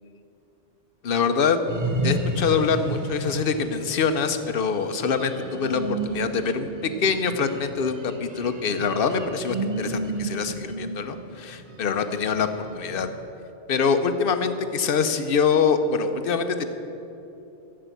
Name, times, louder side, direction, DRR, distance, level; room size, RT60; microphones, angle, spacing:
voice 1, 1.0-1.6 2.0-13.1 13.7-16.7, left 5 dB, 55° left, 9 dB, 0.9 m, -24 dB
sound 1, 1.7-13.1, right 2 dB, 45° right, 1.1 m, -32 dB
11.5 x 7.5 x 8.2 m, 3.0 s
omnidirectional pair, 1.2 m